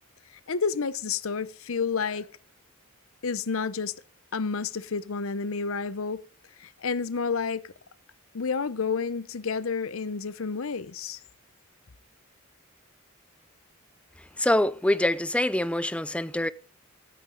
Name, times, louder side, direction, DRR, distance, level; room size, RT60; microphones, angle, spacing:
voice 1, 0.5-2.3 3.2-3.9 4.3-6.2 6.6-7.7 8.3-11.2, left 5 dB, 70° left, 0.7 m, -30 dB
voice 2, 14.4-16.5, left 1 dB, 5° left, 0.5 m, -25 dB
13.0 x 8.7 x 3.9 m
head